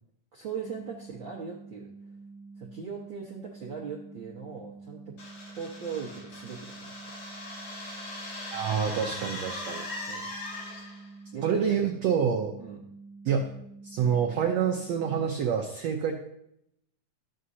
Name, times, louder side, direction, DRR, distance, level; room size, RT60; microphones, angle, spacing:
voice 1, 0.3-1.9 2.6-5.0 5.5-6.9 10.1-10.3 11.3-12.0 12.6-12.8, right 6 dB, 60° right, -4 dB, 1.3 m, -39 dB
sound 1, 0.6-15.2, right 3 dB, 25° left, 1.4 m, -48 dB
sound 2, 5.2-11.1, left 2 dB, 80° left, 5.3 m, -40 dB
voice 2, 8.5-9.8 11.4-12.6 13.2-13.4 13.8-16.1, right 7 dB, 85° right, 2 dB, 1.5 m, -27 dB
14.0 x 7.7 x 2.7 m, 0.76 s
omnidirectional pair, 4.0 m